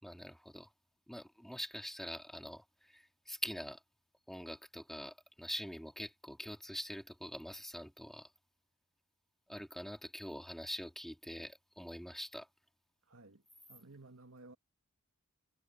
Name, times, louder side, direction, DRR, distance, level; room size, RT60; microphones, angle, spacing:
voice 1, 0.0-0.7 1.1-3.8 4.3-8.3 9.5-12.5, equal, ahead, 2.2 m, -44 dB
voice 2, 13.1-13.4 13.7-14.6, right 2 dB, 80° right, 2.3 m, -55 dB
head